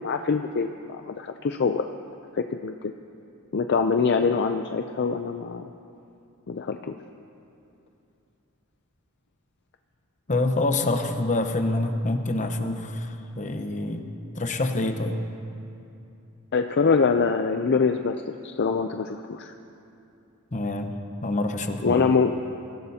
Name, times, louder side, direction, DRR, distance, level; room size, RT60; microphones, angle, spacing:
voice 1, 0.0-1.9 2.3-2.7 3.5-5.6 6.5-7.0 16.5-19.5 21.8-22.4, left 5 dB, 50° left, 6 dB, 0.5 m, -24 dB
voice 2, 10.3-14.0 14.4-15.2 20.5-22.0, left 2 dB, 35° left, 6 dB, 0.9 m, -26 dB
25.0 x 16.0 x 2.8 m, 2.7 s
head